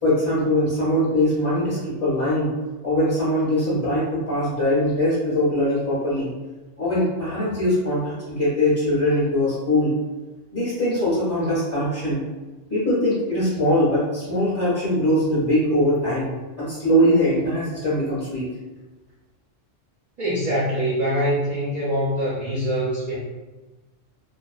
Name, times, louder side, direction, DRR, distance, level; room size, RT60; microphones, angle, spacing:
voice 1, 0.0-2.5 2.8-6.3 6.8-9.9 10.5-12.2 12.7-18.5, left 1 dB, 15° left, -11 dB, 0.5 m, -22 dB
voice 2, 20.2-23.2, equal, 60° right, -7 dB, 0.4 m, -24 dB
2.4 x 2.1 x 2.4 m, 1.2 s
omnidirectional pair, 1.3 m